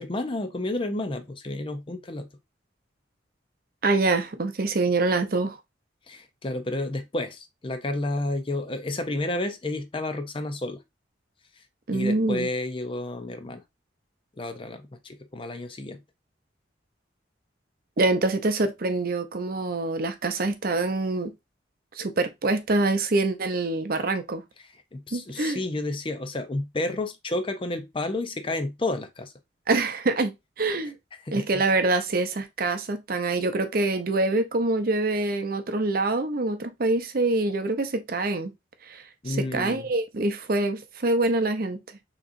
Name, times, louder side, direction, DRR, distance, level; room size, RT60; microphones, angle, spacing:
voice 1, 0.0-2.3 6.1-10.8 11.6-11.7 11.9-13.6 14.4-16.0 24.6-29.3 31.2-31.6 39.2-39.9, left 2 dB, 30° left, 0.6 m, -31 dB
voice 2, 3.8-5.6 11.9-12.5 18.0-21.3 22.0-24.4 25.1-25.6 29.7-30.3 30.6-30.9 31.3-38.5 38.9-41.8, right 2 dB, 50° right, 0.6 m, -25 dB
6.4 x 3.0 x 2.5 m
head